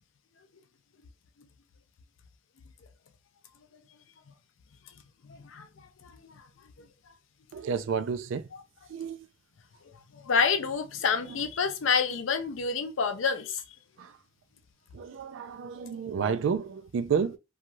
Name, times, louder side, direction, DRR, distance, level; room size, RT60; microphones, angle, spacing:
voice 1, 5.2-6.4 6.8-6.9 10.1-13.6, left 5 dB, 75° left, 0.5 m, -29 dB
voice 2, 7.5-8.5 8.9-9.2 11.3-11.4 14.0-14.2 14.9-17.4, right 6 dB, 70° right, 0.3 m, -31 dB
3.0 x 2.3 x 2.6 m
head